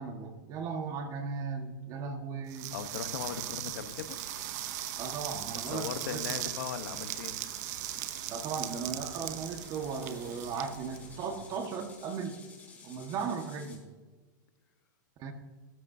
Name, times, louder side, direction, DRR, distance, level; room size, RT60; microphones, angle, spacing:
voice 1, 0.0-2.7 5.0-6.5 8.3-12.4 12.8-13.8 15.2-15.3, right 5 dB, 35° right, 6 dB, 1.6 m, -37 dB
sound 1, 2.5-11.5, right 13 dB, 55° right, 0.8 m, -39 dB
voice 2, 2.7-4.2 5.7-7.4, left 9 dB, 70° left, 10 dB, 1.1 m, -38 dB
sound 2, 3.7-13.8, left 4 dB, 15° left, 3.6 m, -53 dB
19.0 x 14.0 x 2.8 m, 1.3 s
supercardioid pair, 145°, 11 cm